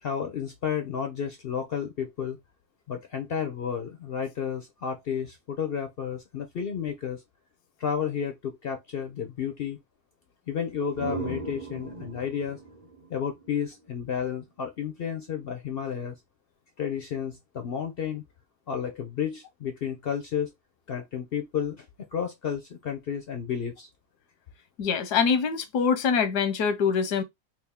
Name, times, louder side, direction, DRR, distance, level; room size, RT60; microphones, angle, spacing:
voice 1, 0.0-2.4 2.9-7.2 7.8-9.8 10.5-12.6 13.1-16.2 16.8-18.2 18.7-20.5 20.9-21.9 22.1-23.9, left 8 dB, 70° left, 0.5 m, -32 dB
sound 1, 10.6-14.3, right 4 dB, 40° right, 0.4 m, -39 dB
voice 2, 24.8-27.2, left 6 dB, 85° left, 1.3 m, -24 dB
3.5 x 2.4 x 3.5 m
omnidirectional pair, 1.7 m